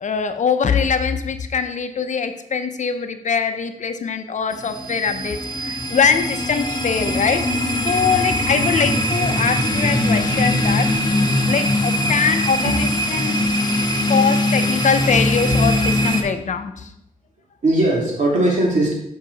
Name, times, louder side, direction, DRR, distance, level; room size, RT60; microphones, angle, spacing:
voice 1, 0.0-7.5 7.8-10.9 11.5-13.4 14.1-16.9, left 6 dB, 55° left, 8 dB, 0.6 m, -22 dB
sound 1, 4.5-16.2, left 1 dB, 30° left, 1.1 m, -21 dB
voice 2, 13.1-13.5 17.6-18.9, right 1 dB, 55° right, -3 dB, 2.8 m, -21 dB
7.5 x 5.5 x 4.0 m, 0.77 s
cardioid pair, 70°, 15 cm